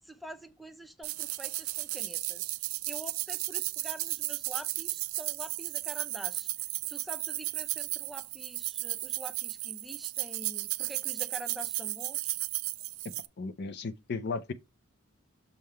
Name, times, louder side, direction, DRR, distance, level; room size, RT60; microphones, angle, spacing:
voice 1, 0.0-2.5 2.9-6.5 6.9-12.4, equal, ahead, 0.5 m, -46 dB
sound 1, 1.0-13.3, right 19 dB, 85° right, 0.4 m, -34 dB
voice 2, 13.4-14.5, left 4 dB, 55° left, 0.5 m, -35 dB
6.5 x 3.7 x 4.4 m
head